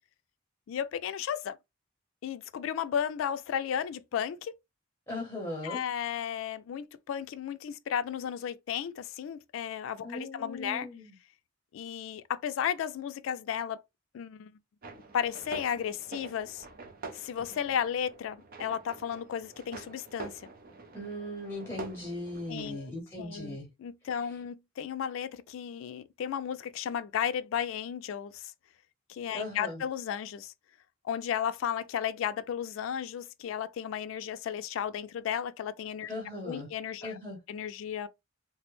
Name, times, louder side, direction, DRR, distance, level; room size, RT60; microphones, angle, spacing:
voice 1, 0.7-1.6 2.2-4.5 5.6-10.9 11.7-13.8 14.1-14.5 15.1-16.7 17.1-20.4 22.5-28.5 29.1-30.5 31.0-36.1 36.4-37.2 37.5-38.1, left 8 dB, 85° left, 0.3 m, -34 dB
voice 2, 5.1-5.8 10.0-11.1 20.9-23.7 24.2-24.3 29.3-29.8 36.1-36.7 37.0-37.4, left 1 dB, 15° left, 0.7 m, -38 dB
sound 1, 14.8-22.7, right 3 dB, 50° right, 0.6 m, -46 dB
3.3 x 2.0 x 3.0 m
head